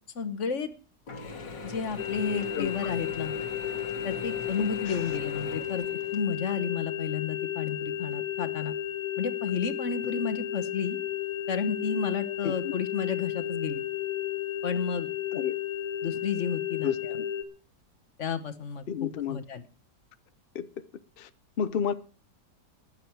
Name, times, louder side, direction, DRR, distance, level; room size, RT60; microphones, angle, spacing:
voice 1, 0.1-0.7 1.6-3.3 4.0-5.8 6.1-8.7 9.2-11.0 11.5-13.8 14.6-15.1 16.0-17.2 18.2-19.6, left 6 dB, 45° left, 1.4 m, -32 dB
Mechanisms / Drill, 1.1-6.6, left 3 dB, 85° left, 2.6 m, -41 dB
sound 1, 2.0-17.4, left 11 dB, 25° left, 1.4 m, -33 dB
voice 2, 16.8-17.3 18.9-19.4 20.5-20.7 21.2-21.3 21.6-21.9, left 7 dB, 65° left, 0.5 m, -31 dB
20.5 x 7.8 x 4.6 m
omnidirectional pair, 1.9 m